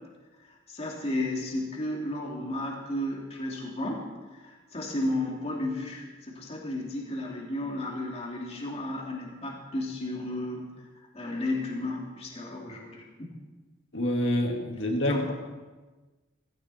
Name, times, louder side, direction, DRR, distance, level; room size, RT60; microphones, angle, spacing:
voice 1, 0.7-4.1 4.3-10.7 11.1-13.1 15.1-15.3, left 1 dB, 30° left, -2 dB, 2.5 m, -33 dB
voice 2, 13.9-15.3, left 1 dB, 65° left, 2 dB, 2.0 m, -27 dB
16.5 x 16.0 x 4.3 m, 1.2 s
head